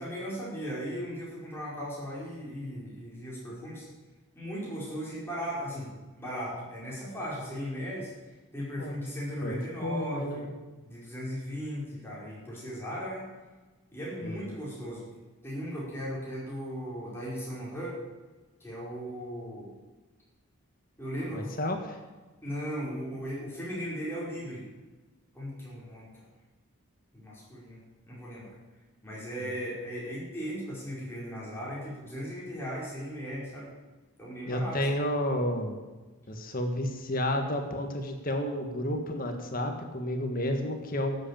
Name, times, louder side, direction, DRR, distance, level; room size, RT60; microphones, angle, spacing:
voice 1, 0.0-3.9 4.3-8.1 8.5-10.5 10.8-13.3 13.9-15.0 15.4-18.0 18.6-19.7 21.0-21.7 22.4-24.7 25.3-26.2 27.1-27.8 28.1-28.6 29.0-33.7 34.2-34.9, equal, 10° left, -6 dB, 5.0 m, -37 dB
voice 2, 9.4-10.5 14.2-14.4 21.3-22.0 34.4-35.8 36.3-41.2, left 1 dB, 40° left, 4 dB, 1.6 m, -31 dB
13.0 x 8.0 x 8.9 m, 1.2 s
head